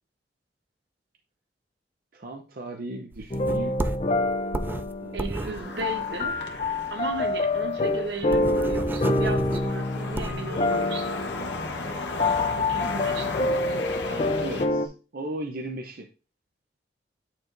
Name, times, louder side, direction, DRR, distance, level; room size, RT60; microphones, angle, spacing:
voice 1, 2.1-3.8 5.0-6.0 12.8-13.0 14.1-16.1, right 1 dB, 55° right, 0.6 m, -37 dB
sound 1, 3.1-6.8 7.2-7.3 7.6-7.7 8.0-10.5, right 1 dB, 10° right, 0.3 m, -32 dB
sound 2, 3.3-14.9, left 2 dB, 35° left, 0.6 m, -27 dB
voice 2, 5.1-6.4 6.9-11.6 12.6-13.6, right 3 dB, 70° right, 1.0 m, -35 dB
sound 3, 5.3-14.6, left 3 dB, 90° left, 1.1 m, -35 dB
8.6 x 4.6 x 2.5 m
head